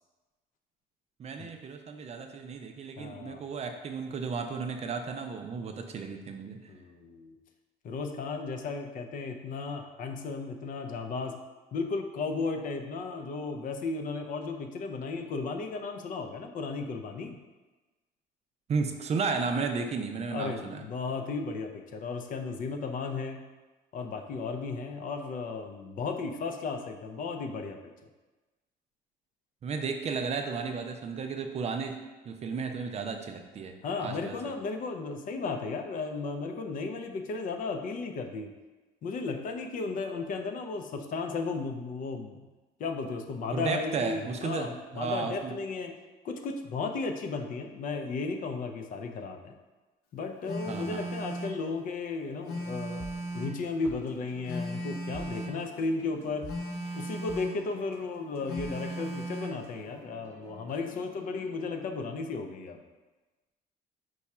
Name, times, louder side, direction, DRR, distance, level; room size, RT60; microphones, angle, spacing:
voice 1, 1.2-6.7 18.7-20.8 29.6-32.0 32.3-34.5 43.5-45.5 50.6-51.1, right 5 dB, 40° right, 5 dB, 0.5 m, -34 dB
voice 2, 3.0-3.4 6.7-7.4 7.8-11.4 11.7-17.4 20.3-23.5 23.9-27.8 33.8-38.5 39.0-42.5 42.8-46.0 46.2-49.5 50.1-53.1 53.3-56.5 56.9-62.8, left 4 dB, 55° left, 5 dB, 0.5 m, -35 dB
Telephone, 50.4-51.6 52.4-53.6 54.4-55.6 56.4-57.6 58.5-59.6, right 1 dB, 80° left, 0.9 m, -36 dB
sound 1, 52.6-61.9, equal, 15° left, 1.0 m, -51 dB
4.7 x 2.3 x 4.2 m, 1.2 s
cardioid pair, 110°, 17 cm